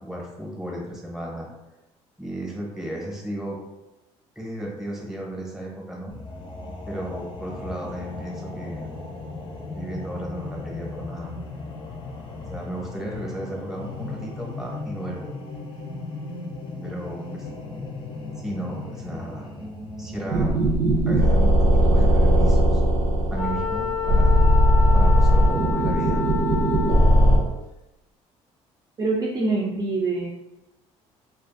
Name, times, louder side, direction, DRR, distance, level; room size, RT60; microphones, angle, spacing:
voice 1, 0.0-1.5 2.2-3.6 4.4-6.1 6.9-8.9 9.7-11.4 12.5-15.3 16.8-17.5 18.4-19.5 20.0-20.6 21.1-22.8 23.3-24.4 24.9-26.4, right 1 dB, 5° right, -2 dB, 0.8 m, -34 dB
sound 1, 6.1-21.1, left 2 dB, 35° left, 0.5 m, -36 dB
sound 2, 20.3-27.4, equal, 85° right, 0.7 m, -18 dB
Wind instrument woodwind instrument, 23.3-27.5, left 4 dB, 90° left, 0.7 m, -29 dB
voice 2, 29.0-30.3, right 3 dB, 30° right, -3 dB, 0.4 m, -24 dB
2.4 x 2.3 x 2.5 m, 0.96 s
supercardioid pair, 80°, 14 cm